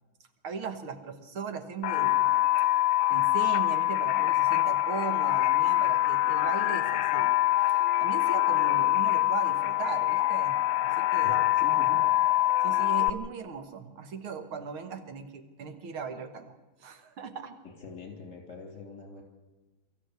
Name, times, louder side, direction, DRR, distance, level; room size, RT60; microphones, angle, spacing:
voice 1, 0.4-2.3 3.1-7.3 8.0-11.4 12.6-17.6, right 5 dB, 75° right, 8 dB, 2.4 m, -38 dB
sound 1, 1.8-13.1, left 15 dB, 75° left, 1.6 m, -25 dB
voice 2, 11.2-12.0 17.6-19.2, left 3 dB, 35° left, 2 dB, 4.2 m, -44 dB
23.5 x 14.0 x 8.2 m, 1.2 s
omnidirectional pair, 2.3 m